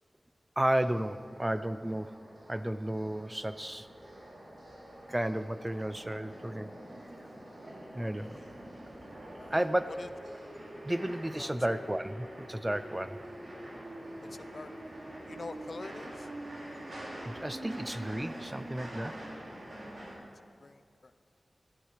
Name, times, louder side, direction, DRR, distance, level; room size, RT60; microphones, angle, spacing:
voice 1, 0.6-2.2 2.5-3.9 5.1-6.7 8.0-8.4 9.5-9.9 10.8-13.2 17.2-19.2, right 1 dB, 15° right, 12 dB, 0.4 m, -32 dB
sound 1, 0.6-20.2, right 1 dB, 80° right, 3.2 m, -45 dB
sound 2, 7.5-12.9, equal, 60° right, 4.3 m, -59 dB
voice 2, 9.4-10.4 11.3-11.5 14.2-14.9 15.3-16.3 20.6-21.1, left 3 dB, 60° left, 11 dB, 0.6 m, -46 dB
14.0 x 13.0 x 4.9 m, 2.3 s
wide cardioid pair, 85°, 0 cm